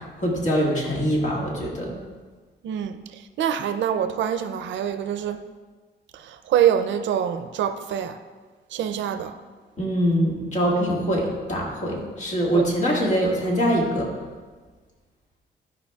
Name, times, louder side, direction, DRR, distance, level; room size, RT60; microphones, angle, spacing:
voice 1, 0.0-2.0 9.8-14.1, equal, 40° left, 1.7 m, -23 dB
voice 2, 2.6-5.4 6.1-8.2 8.7-9.4 12.5-12.7, right 9 dB, 90° right, 0.5 m, -25 dB
12.5 x 4.9 x 2.3 m
cardioid pair, 125°, 19 cm